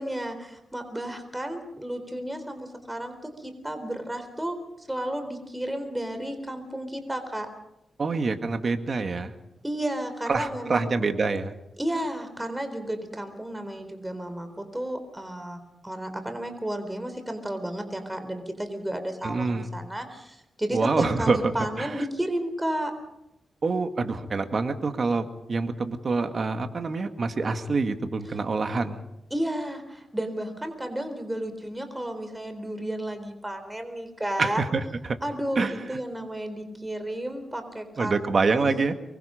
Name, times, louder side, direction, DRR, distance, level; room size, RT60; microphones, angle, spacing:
voice 1, 0.0-4.6 4.9-7.5 9.6-10.9 11.8-22.9 29.3-34.6 35.2-38.7, right 1 dB, 10° right, 7 dB, 4.0 m, -32 dB
voice 2, 8.0-9.4 10.3-11.5 19.2-19.7 20.7-21.5 21.8-21.9 23.6-29.0 34.4-35.2 35.6-35.7 38.0-38.9, right 4 dB, 50° right, 7 dB, 2.1 m, -26 dB
24.5 x 23.0 x 5.2 m, 0.84 s
cardioid pair, 85°, 0 cm